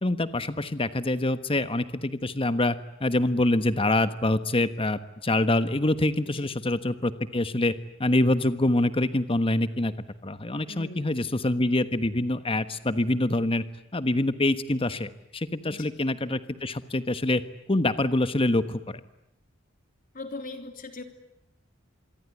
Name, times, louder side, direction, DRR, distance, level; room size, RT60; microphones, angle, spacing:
voice 1, 0.0-7.7 8.0-9.9 10.2-13.6 13.9-17.4 17.7-19.0, left 2 dB, 30° left, 12 dB, 1.3 m, -25 dB
voice 2, 10.7-11.2 15.6-15.9 20.1-21.0, left 2 dB, 45° left, 7 dB, 3.3 m, -40 dB
26.5 x 23.0 x 9.6 m, 0.79 s
head